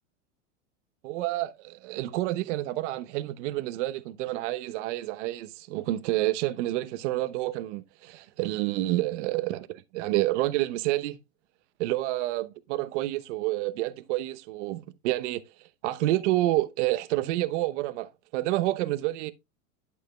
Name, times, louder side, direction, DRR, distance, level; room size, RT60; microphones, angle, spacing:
voice 1, 1.0-11.2 11.8-15.4 15.8-19.3, right 16 dB, 60° right, 1.0 m, -29 dB
12.0 x 6.6 x 2.3 m
hypercardioid pair, 110°, 40 cm